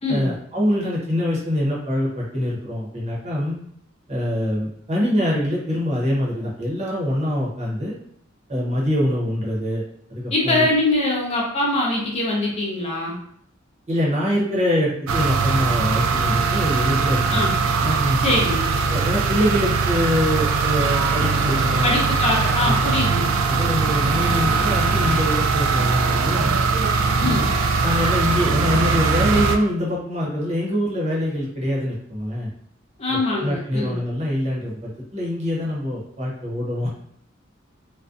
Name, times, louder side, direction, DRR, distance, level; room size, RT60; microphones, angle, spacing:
voice 1, 0.1-3.6 4.1-7.9 8.5-9.8 10.1-10.7 13.9-17.5 17.8-18.2 18.9-22.0 22.6-23.0 23.5-26.6 27.2-27.5 27.8-32.5 33.1-36.9, equal, 35° right, -5 dB, 0.7 m, -24 dB
voice 2, 10.3-13.2 17.3-17.5 18.2-18.7 21.8-23.4 27.2-27.5 33.0-34.0, left 2 dB, 30° left, -3 dB, 0.5 m, -23 dB
sound 1, 15.1-29.6, right 4 dB, 85° right, 0.3 m, -21 dB
2.5 x 2.1 x 2.4 m, 0.67 s
head